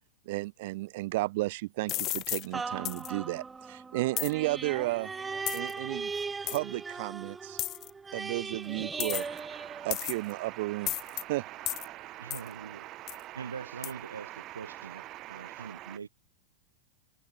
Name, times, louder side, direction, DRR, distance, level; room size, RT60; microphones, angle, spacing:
voice 1, 0.3-5.1 5.5-6.1 6.4-7.6 8.1-9.2 9.8-10.9 11.3-11.4, right 20 dB, 50° right, 2.2 m, -33 dB
sound 1, 1.9-2.5 2.8-3.1 4.2-4.3 5.5-5.7 6.5-6.6 7.6-7.9 9.0-9.4 9.9-10.3 10.9-11.2 11.7-11.9 12.3-12.5 13.1-13.2 13.8-13.9, left 16 dB, 35° left, 0.6 m, -33 dB
sound 2, 2.5-10.4 10.9-11.0, right 4 dB, 15° right, 0.6 m, -39 dB
voice 2, 9.1-16.0, right 16 dB, 35° right, 2.7 m, -45 dB
voice 3, 12.2-12.9 13.4-16.1, right 6 dB, 75° right, 1.8 m, -43 dB
figure-of-eight pair, 95°, 0 cm